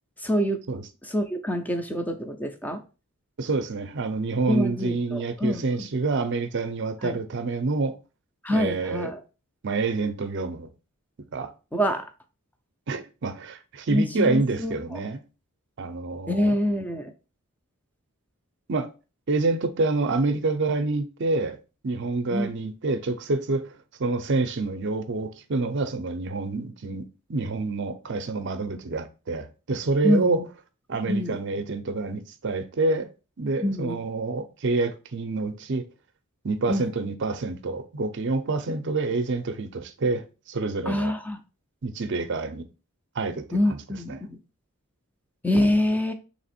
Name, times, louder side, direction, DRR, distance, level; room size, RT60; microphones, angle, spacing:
voice 1, 0.2-0.6 1.0-2.8 4.5-5.9 7.0-7.2 8.4-9.2 11.7-12.0 13.9-15.0 16.3-17.1 22.3-22.5 30.0-30.4 31.1-31.4 33.6-34.0 36.7-36.9 40.9-41.4 43.5-44.4 45.4-46.1, left 1 dB, 10° left, 0.5 m, -26 dB
voice 2, 3.4-8.0 8.5-9.1 9.6-10.7 11.3-11.5 12.9-15.2 15.8-16.5 18.7-18.9 19.3-21.6 21.8-23.7 24.0-30.4 30.9-33.1 33.4-35.9 36.4-41.1 41.8-42.7 43.2-43.8 44.1-44.2, right 3 dB, 55° right, 0.5 m, -27 dB
3.4 x 3.0 x 4.2 m
head